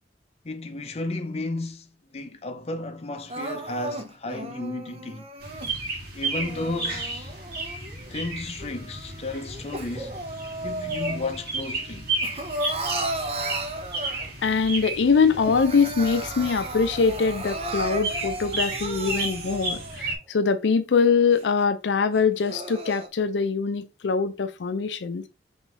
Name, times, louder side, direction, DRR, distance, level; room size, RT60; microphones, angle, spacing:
voice 1, 0.4-5.3 6.1-7.3 8.1-10.2 10.6-12.1, left 2 dB, 35° left, 0.6 m, -33 dB
Crying sobbing, 3.3-5.7 6.4-8.1 8.6-11.5 11.8-14.5 14.9-15.0 15.3-20.1 20.7-20.8 21.3-21.4 22.2-23.1, right 1 dB, 35° right, 0.7 m, -34 dB
sound 1, 5.4-20.2, right 2 dB, 55° right, 1.6 m, -33 dB
voice 2, 14.4-25.2, left 5 dB, 90° left, 0.5 m, -23 dB
5.4 x 3.1 x 3.0 m
head